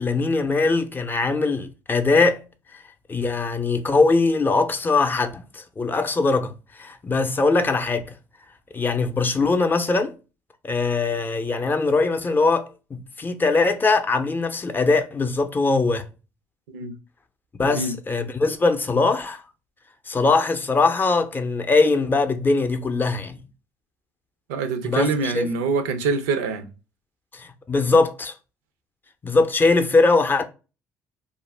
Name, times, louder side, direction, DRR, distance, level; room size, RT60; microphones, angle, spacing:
voice 1, 0.0-2.4 2.7-2.8 3.1-8.1 8.7-10.1 10.6-16.1 17.6-19.4 20.1-23.4 24.8-25.5 27.3-28.3 29.2-30.4, left 3 dB, 25° left, 0.5 m, -21 dB
voice 2, 17.6-17.9 24.5-26.7, right 4 dB, 90° right, 0.4 m, -25 dB
2.4 x 2.1 x 3.1 m
supercardioid pair, 65°, 8 cm